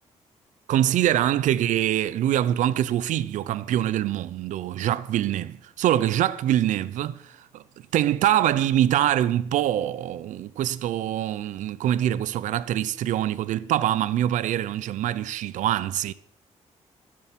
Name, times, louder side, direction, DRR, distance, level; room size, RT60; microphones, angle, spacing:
voice 1, 0.7-7.6 7.9-16.1, right 12 dB, 85° right, 0.5 m, -24 dB
16.0 x 7.6 x 5.9 m
cardioid pair, 145°, 13 cm